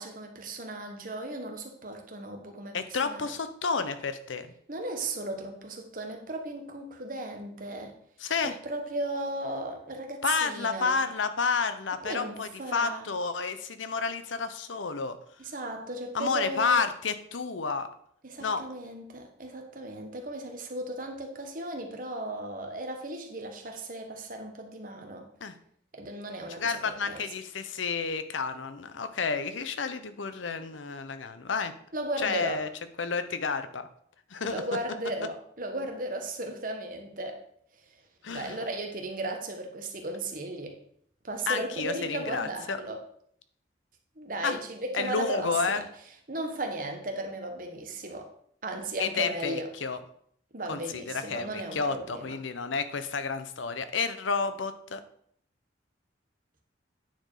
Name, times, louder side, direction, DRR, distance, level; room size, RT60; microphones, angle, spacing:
voice 1, 0.0-3.3 4.7-7.9 8.4-11.0 12.0-13.1 15.4-16.8 18.2-25.3 25.9-27.2 31.9-32.6 34.4-37.4 38.3-40.8 41.2-43.0 44.2-45.8 46.3-48.3 48.6-49.7 50.5-52.3, right 2 dB, 45° right, 3 dB, 1.3 m, -36 dB
voice 2, 2.7-4.5 8.2-8.6 10.2-15.2 16.1-17.9 18.4-18.6 25.4-25.5 26.6-31.7 32.2-32.7 33.0-33.9 34.3-34.6 38.2-38.6 41.5-42.8 44.4-44.6 44.9-45.8 49.0-50.0 50.7-55.0, left 5 dB, 90° left, 11 dB, 0.8 m, -30 dB
9.3 x 4.5 x 4.9 m, 0.65 s
head